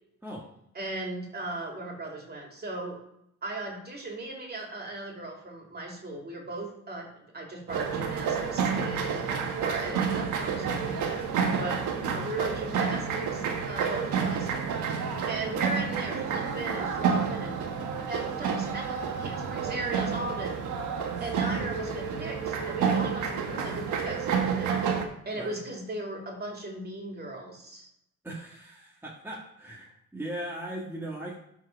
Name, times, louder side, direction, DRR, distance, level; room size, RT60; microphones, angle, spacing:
voice 1, 0.7-3.0 3.4-11.2 11.6-14.5 15.3-17.6 18.1-20.6 21.2-24.9 25.2-27.9, right 2 dB, 30° right, 0 dB, 2.9 m, -37 dB
sound 1, 7.7-25.0, right 6 dB, 80° right, 1.4 m, -29 dB
voice 2, 28.2-31.4, right 1 dB, 5° right, -3 dB, 1.6 m, -38 dB
12.5 x 4.6 x 4.6 m, 0.78 s
cardioid pair, 90°, 30 cm